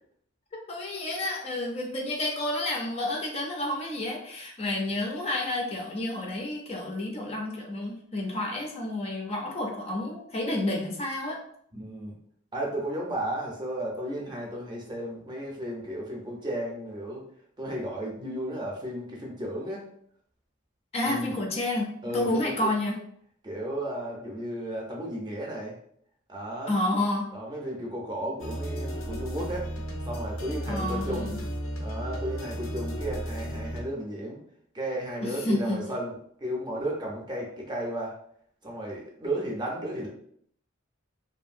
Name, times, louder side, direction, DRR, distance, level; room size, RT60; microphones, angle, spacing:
voice 1, 0.5-11.4 20.9-22.9 26.7-27.3 30.7-31.4 35.2-35.8, left 1 dB, 30° left, 0 dB, 0.4 m, -30 dB
voice 2, 11.7-12.1 12.5-17.2 17.6-19.9 21.0-21.3 22.0-22.7 23.4-25.8 26.3-26.8 27.3-29.7 30.1-31.3 31.8-34.4 34.7-36.1 36.4-38.1 38.6-40.1, right 1 dB, 20° right, -2 dB, 0.5 m, -34 dB
sound 1, 28.4-33.8, equal, 85° left, 0.6 m, -34 dB
2.6 x 2.6 x 2.5 m, 0.65 s
head